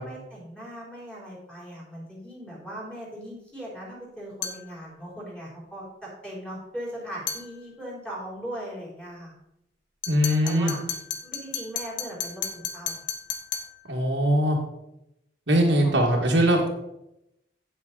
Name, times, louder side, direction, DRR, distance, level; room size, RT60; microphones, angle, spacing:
voice 1, 0.0-5.9 6.2-9.3 10.4-10.8 11.2-13.0 15.8-16.1, equal, 5° left, -6 dB, 3.9 m, -39 dB
sound 1, 4.4-4.7 7.3-7.5 10.0-13.8, left 7 dB, 85° left, 1.2 m, -33 dB
voice 2, 10.1-10.7 13.9-14.6 15.5-16.7, equal, 80° right, 0 dB, 2.1 m, -21 dB
8.8 x 7.8 x 4.1 m, 0.83 s
head